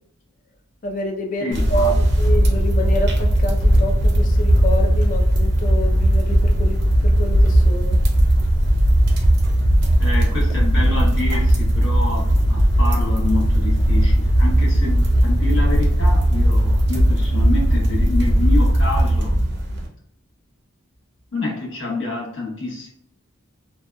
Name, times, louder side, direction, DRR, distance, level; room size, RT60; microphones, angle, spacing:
voice 1, 0.8-6.8 7.0-8.0, left 1 dB, 40° left, 3 dB, 0.4 m, -27 dB
voice 2, 1.4-1.9 10.0-19.4 21.3-22.9, left 2 dB, 65° left, -5 dB, 1.0 m, -28 dB
sound 1, 1.5-19.9, equal, 50° right, 0.5 m, -17 dB
2.7 x 2.2 x 2.2 m, 0.74 s
head